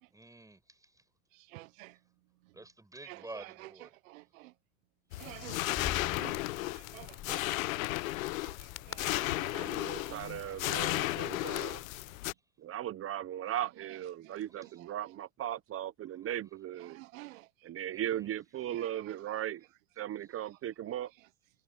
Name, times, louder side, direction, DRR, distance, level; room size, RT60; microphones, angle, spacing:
voice 1, 0.1-1.0 2.5-3.9 8.0-8.4 16.2-16.3 17.9-18.3, right 2 dB, 10° right, 5.3 m, -50 dB
voice 2, 1.3-1.9 3.0-3.7 4.0-4.5 5.2-7.5 8.4-8.5 8.9-11.7 14.2-14.4 16.8-17.5 18.7-18.9, right 20 dB, 75° right, 1.1 m, -50 dB
sound 1, 5.1-12.3, left 19 dB, 75° left, 1.2 m, -34 dB
Crackle, 5.5-12.2, left 11 dB, 40° left, 4.9 m, -46 dB
voice 3, 9.5-11.8 12.6-17.0 17.6-19.6 20.0-21.1, right 11 dB, 35° right, 0.9 m, -38 dB
hypercardioid pair, 100°, 40 cm